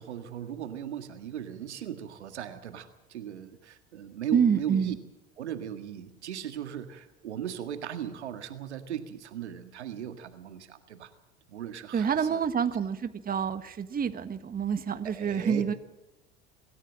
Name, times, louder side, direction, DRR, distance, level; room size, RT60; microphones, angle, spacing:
voice 1, 0.0-5.0 5.4-11.1 11.5-12.5 15.0-15.7, right 10 dB, 85° right, 8 dB, 1.9 m, -38 dB
voice 2, 4.3-5.0 11.9-15.7, right 7 dB, 25° right, 9 dB, 1.4 m, -27 dB
25.0 x 14.0 x 7.5 m, 0.96 s
hypercardioid pair, 75°, 33 cm